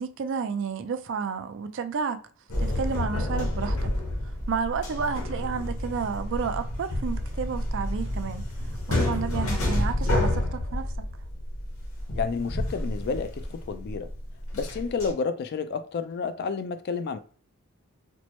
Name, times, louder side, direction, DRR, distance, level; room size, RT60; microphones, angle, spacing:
voice 1, 0.0-2.2 2.6-3.9 4.5-8.4 8.9-10.9, right 6 dB, 60° right, 0.4 m, -31 dB
sound 1, 2.5-15.1, left 1 dB, 70° left, 1.1 m, -29 dB
voice 2, 12.1-14.1 14.5-17.2, left 5 dB, 50° left, 0.3 m, -30 dB
4.3 x 2.0 x 3.0 m
head